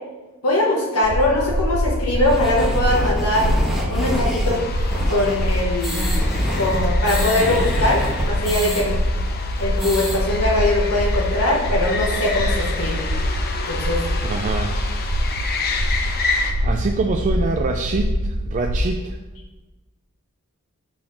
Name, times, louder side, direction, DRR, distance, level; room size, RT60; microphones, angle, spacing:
voice 1, 0.4-3.4 3.9-4.6 5.1-6.0 6.5-9.0 9.6-13.0 13.7-14.0, left 1 dB, 85° left, -4 dB, 1.1 m, -21 dB
sound 1, 1.0-18.9, equal, 75° right, 0.8 m, -24 dB
sound 2, 2.3-8.8 9.2-9.3 9.6-10.2, equal, ahead, 1.0 m, -28 dB
sound 3, 4.5-16.5, left 4 dB, 45° left, 0.7 m, -30 dB
voice 2, 14.2-14.8 15.6-16.0 16.6-19.2, right 3 dB, 35° right, 3 dB, 0.3 m, -25 dB
5.9 x 3.9 x 4.9 m, 1.1 s
head